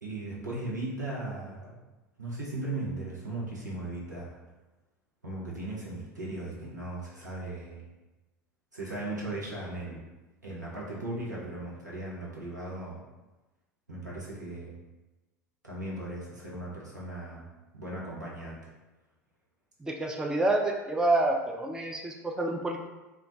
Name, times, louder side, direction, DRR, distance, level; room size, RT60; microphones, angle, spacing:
voice 1, 0.0-1.8 2.2-4.4 5.2-7.8 8.7-10.0 10.4-13.0 13.9-14.8 15.6-17.4 17.7-18.6, right 2 dB, 85° right, -5 dB, 0.8 m, -37 dB
voice 2, 19.8-22.8, right 2 dB, 5° right, 1 dB, 0.3 m, -28 dB
2.3 x 2.1 x 3.8 m, 1.1 s
figure-of-eight pair, 80°, 9 cm